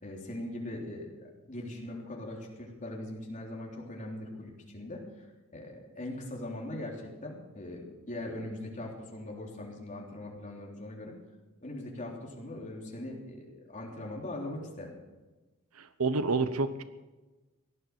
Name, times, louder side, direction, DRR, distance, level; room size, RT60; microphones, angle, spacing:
voice 1, 0.0-5.0 5.5-11.1 11.6-14.9, left 1 dB, 35° left, -1 dB, 3.4 m, -41 dB
voice 2, 15.8-16.8, right 3 dB, 70° right, 12 dB, 0.9 m, -29 dB
17.5 x 11.5 x 6.8 m, 1.2 s
head